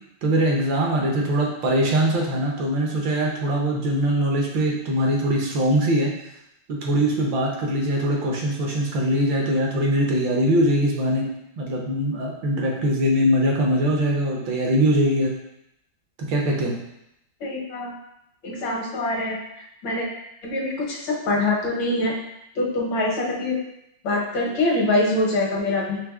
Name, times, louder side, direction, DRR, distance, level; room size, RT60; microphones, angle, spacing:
voice 1, 0.2-6.1 6.7-11.3 11.6-15.3 16.2-16.8, equal, 75° right, -1 dB, 1.5 m, -22 dB
voice 2, 17.4-17.9 18.4-20.1 20.4-22.1 22.6-23.6 24.0-26.0, left 2 dB, 80° left, -3 dB, 1.7 m, -24 dB
4.9 x 3.4 x 2.3 m, 0.81 s
omnidirectional pair, 2.2 m